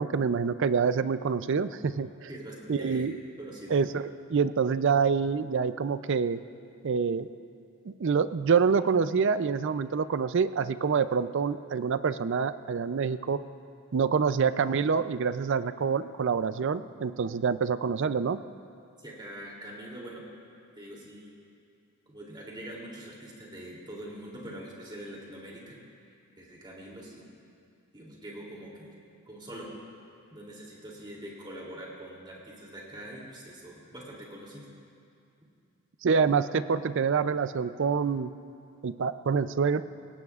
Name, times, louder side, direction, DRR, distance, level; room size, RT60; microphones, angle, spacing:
voice 1, 0.0-2.3 2.7-3.1 3.7-6.4 6.8-7.3 7.9-13.4 13.9-18.4 36.0-38.3 38.8-39.8, right 5 dB, 55° right, 13 dB, 0.4 m, -26 dB
voice 2, 2.3-3.1 3.4-3.8 19.0-20.2 20.8-21.3 22.1-25.8 26.4-27.4 27.9-28.9 29.3-29.7 30.3-34.7, right 1 dB, 20° right, -4 dB, 2.9 m, -44 dB
25.0 x 17.5 x 2.4 m, 2.5 s
head